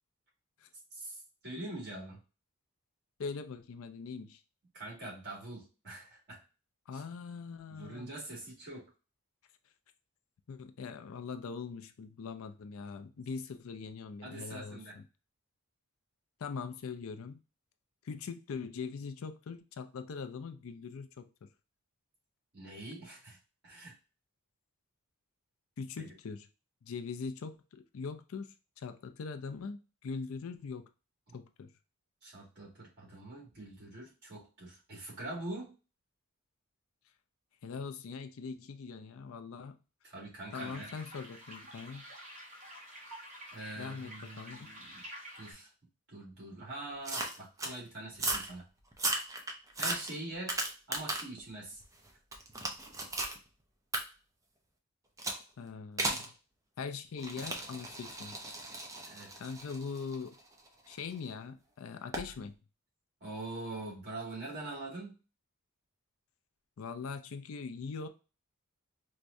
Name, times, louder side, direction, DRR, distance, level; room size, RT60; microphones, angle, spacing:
voice 1, 0.9-2.2 4.7-6.4 6.9-7.0 7.7-8.9 14.2-15.0 22.5-23.4 23.6-23.9 26.0-26.1 31.3-31.4 32.2-35.7 40.0-40.9 43.5-45.0 45.3-45.7 46.1-48.6 49.8-50.6 50.9-51.8 59.1-59.3 63.2-65.2, right 2 dB, 50° right, 1.9 m, -44 dB
voice 2, 3.2-4.4 6.9-8.1 10.5-15.0 16.4-17.4 18.0-21.5 25.8-26.5 26.8-30.9 31.3-31.7 37.6-39.8 40.5-42.0 43.8-44.7 55.6-56.3 56.8-58.4 59.4-60.4 60.9-62.5 66.8-68.1, left 5 dB, 65° left, 0.4 m, -42 dB
sound 1, 40.5-45.5, equal, 35° right, 1.0 m, -49 dB
sound 2, 47.1-47.8 48.1-48.5 48.9-51.4 51.8-53.4 53.9-54.0 55.2-55.4 56.0-56.3 57.2-61.1 62.1-62.3, right 2 dB, 15° right, 0.5 m, -36 dB
4.6 x 2.1 x 2.6 m
head